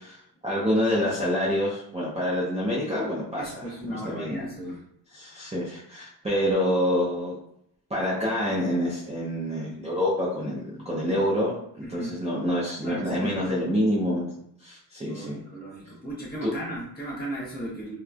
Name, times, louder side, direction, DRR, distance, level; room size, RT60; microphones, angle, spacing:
voice 1, 0.4-4.4 5.1-7.4 7.9-14.3 14.6-15.4 16.4-16.5, equal, 15° right, -7 dB, 0.6 m, -27 dB
voice 2, 3.4-4.8 11.8-12.2 12.8-13.5 15.0-18.0, right 1 dB, 25° left, -6 dB, 1.1 m, -35 dB
3.0 x 2.1 x 2.4 m, 0.70 s
wide cardioid pair, 130°, 41 cm